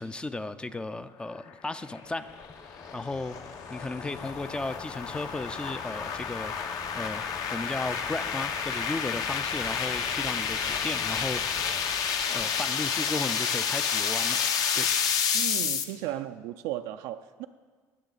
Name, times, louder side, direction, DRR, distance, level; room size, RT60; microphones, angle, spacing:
voice 1, 0.0-2.3 2.6-7.3 7.5-14.9, left 2 dB, 10° left, 12 dB, 0.4 m, -35 dB
sound 1, 1.9-15.8, left 7 dB, 55° left, 0.9 m, -30 dB
Truck, 2.0-13.2, left 4 dB, 30° left, 1.0 m, -46 dB
voice 2, 15.3-17.5, right 13 dB, 90° right, 7 dB, 0.4 m, -35 dB
20.5 x 7.4 x 4.0 m, 1.5 s
cardioid pair, 135°, 8 cm